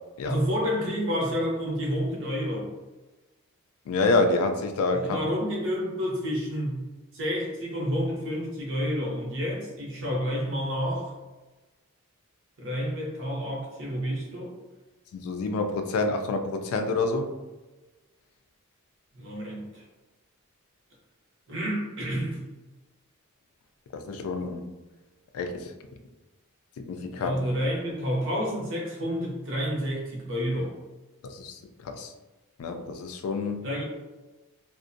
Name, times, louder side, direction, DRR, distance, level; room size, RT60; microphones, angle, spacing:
voice 1, 0.2-2.7 4.9-6.8 7.1-11.1 12.6-14.5 19.1-19.8 21.5-22.4 27.1-30.7 33.6-33.8, equal, 60° right, -2 dB, 0.7 m, -29 dB
voice 2, 3.9-5.3 15.1-17.3 23.9-24.6 25.3-25.7 26.8-27.4 31.2-32.1 32.6-33.6, left 3 dB, 75° left, 6 dB, 0.3 m, -28 dB
2.4 x 2.1 x 2.5 m, 1.2 s
head